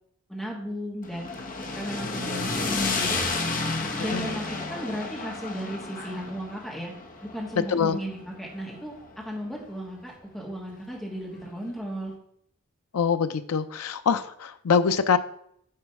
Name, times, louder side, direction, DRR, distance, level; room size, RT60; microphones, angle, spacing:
voice 1, 0.3-1.3 1.8-3.2 4.0-6.9 7.2-12.1, equal, ahead, -3 dB, 1.7 m, -35 dB
sound 1, 1.0-9.3, left 3 dB, 35° left, 0.9 m, -31 dB
voice 2, 12.9-15.2, left 6 dB, 85° left, 10 dB, 0.5 m, -24 dB
8.6 x 4.1 x 4.7 m, 0.69 s
head